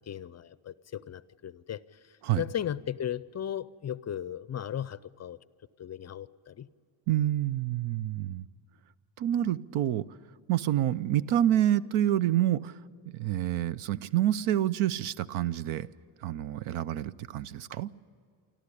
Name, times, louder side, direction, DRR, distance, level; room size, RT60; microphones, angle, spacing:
voice 1, 0.1-5.4 5.8-6.7, left 10 dB, 35° left, 17 dB, 0.5 m, -36 dB
voice 2, 7.1-8.4 9.2-10.0 10.5-12.7 13.1-15.9 16.2-17.9, right 12 dB, 75° right, 18 dB, 0.7 m, -27 dB
25.0 x 14.0 x 9.9 m, 2.2 s
cardioid pair, 110°, 49 cm